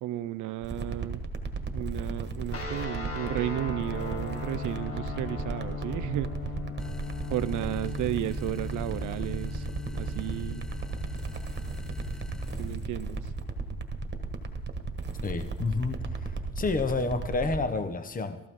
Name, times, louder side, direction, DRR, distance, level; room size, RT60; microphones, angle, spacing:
voice 1, 0.0-1.2 1.7-6.3 7.3-9.7 9.9-10.6 12.6-13.3 17.0-17.2, right 14 dB, 80° right, 14 dB, 0.5 m, -33 dB
sound 1, 0.6-17.6, right 3 dB, 35° right, 1.5 m, -35 dB
sound 2, 2.5-12.8, left 5 dB, 50° left, 2.0 m, -39 dB
sound 3, 6.8-12.9, left 1 dB, ahead, 0.6 m, -43 dB
voice 2, 15.2-18.4, left 3 dB, 30° left, 9 dB, 1.1 m, -30 dB
15.0 x 14.0 x 3.7 m, 0.94 s
cardioid pair, 90°, 30 cm